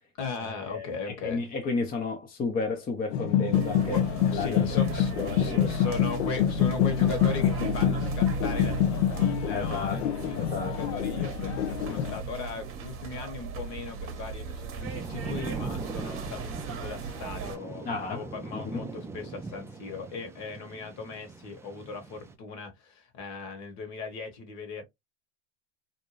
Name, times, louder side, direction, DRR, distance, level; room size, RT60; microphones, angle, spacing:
voice 1, 0.2-1.5 3.8-24.8, left 4 dB, 50° left, 1.3 m, -38 dB
voice 2, 1.2-4.0 4.3-4.7 5.2-5.9 9.5-10.0 10.4-10.8 17.8-18.2 18.5-18.6, left 3 dB, 25° left, 0.6 m, -32 dB
sound 1, 3.1-12.2, left 9 dB, 85° left, 0.5 m, -26 dB
sound 2, 3.5-17.6, right 5 dB, 35° right, 0.9 m, -37 dB
Thunder / Rain, 14.8-22.3, right 3 dB, 10° right, 0.3 m, -40 dB
2.6 x 2.2 x 3.0 m
hypercardioid pair, 95°, 36 cm